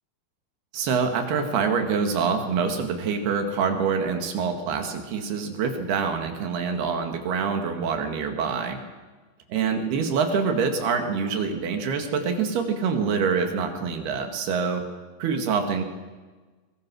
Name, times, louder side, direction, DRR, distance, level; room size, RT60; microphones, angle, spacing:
voice 1, 0.7-8.8 9.5-14.8 15.2-15.8, right 5 dB, 85° right, 6 dB, 4.1 m, -25 dB
23.0 x 21.0 x 6.2 m, 1.3 s
omnidirectional pair, 4.4 m